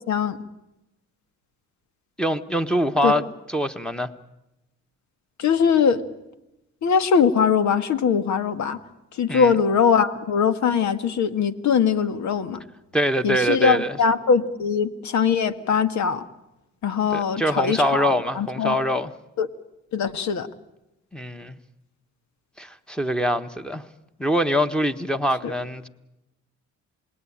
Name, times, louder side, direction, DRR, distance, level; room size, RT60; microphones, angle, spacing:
voice 1, 0.1-0.4 3.0-3.1 5.4-6.0 6.8-8.8 9.1-12.6 13.2-16.2 16.8-18.8 19.4-19.5 19.9-20.5 25.4-25.6, left 6 dB, 65° left, 1.8 m, -21 dB
voice 2, 2.2-4.1 9.3-9.5 12.9-14.0 17.1-19.1 21.1-21.6 22.6-23.8 24.2-25.9, equal, 5° left, 1.5 m, -24 dB
28.0 x 20.0 x 8.9 m
cardioid pair, 90°, 30 cm